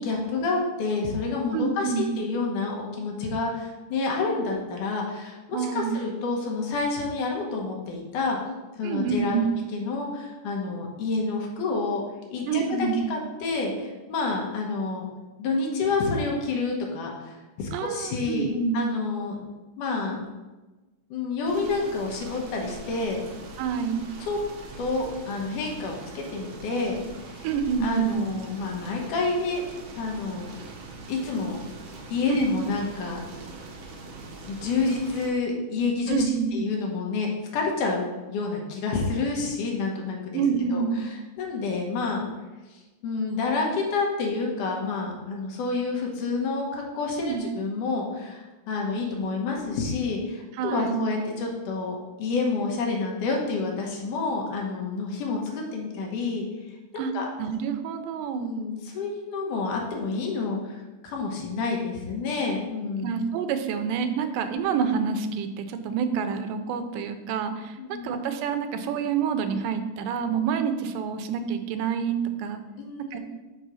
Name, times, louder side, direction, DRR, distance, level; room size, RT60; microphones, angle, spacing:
voice 1, 0.0-8.4 8.8-9.4 9.7-12.0 12.3-15.1 15.4-19.4 19.8-20.2 21.1-23.2 24.3-24.4 24.8-27.0 27.3-27.5 27.8-29.6 30.0-30.5 31.1-31.6 32.1-33.2 34.4-40.4 40.7-41.1 41.4-42.2 42.7-56.4 56.9-57.2 58.3-60.8 61.0-63.1 67.8-68.1 72.8-73.2, left 4 dB, 75° left, 0 dB, 2.6 m, -29 dB
voice 2, 1.5-2.1 5.5-6.0 8.8-9.5 12.5-13.1 17.7-18.7 23.6-24.0 27.4-28.2 32.3-32.5 36.1-36.7 40.3-41.1 47.2-47.4 50.6-51.1 57.0-57.1 57.4-58.5 63.0-72.6 73.1-73.2, right 6 dB, 90° right, 8 dB, 2.2 m, -27 dB
sound 1, 21.5-35.3, right 3 dB, 65° right, 2.1 m, -42 dB
6.2 x 4.0 x 6.2 m, 1.2 s
omnidirectional pair, 3.7 m